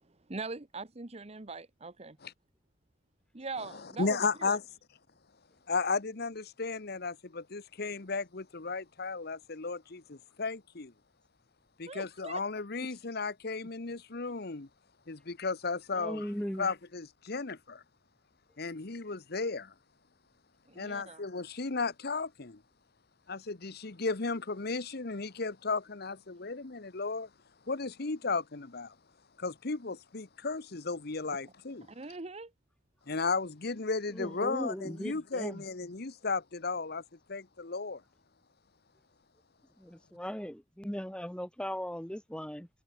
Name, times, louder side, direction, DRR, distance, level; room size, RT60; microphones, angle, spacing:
voice 1, 0.0-2.2 3.3-4.6 11.9-12.4 20.7-21.2 31.9-32.5, right 3 dB, 35° right, 1.0 m, -42 dB
voice 2, 4.0-4.6 5.7-10.9 11.8-14.7 15.1-16.3 16.6-17.8 18.6-19.7 20.7-22.6 23.3-27.3 27.7-28.9 29.4-31.9 33.1-37.0 37.3-38.0, left 4 dB, 55° left, 1.1 m, -34 dB
voice 3, 16.0-16.7 34.1-35.6 39.8-42.7, equal, 5° left, 1.6 m, -38 dB
head